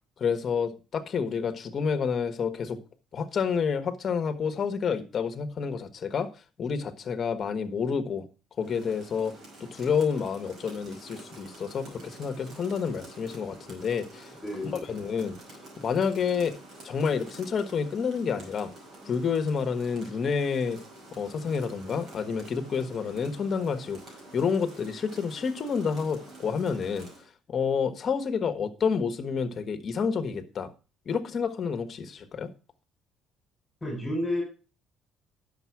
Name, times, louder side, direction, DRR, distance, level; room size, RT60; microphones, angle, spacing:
voice 1, 0.2-2.8 3.1-6.3 6.6-8.3 8.6-9.3 9.6-14.3 14.9-15.4 15.8-16.6 16.8-18.7 19.0-20.8 21.2-27.1 27.5-30.7 31.0-32.5, left 6 dB, 40° left, 1.4 m, -29 dB
Rain, 8.6-27.3, right 1 dB, 50° right, 5.5 m, -48 dB
voice 2, 14.4-15.0 33.8-34.4, left 1 dB, 10° left, 4.1 m, -31 dB
10.0 x 6.9 x 4.7 m
cardioid pair, 130°, 0 cm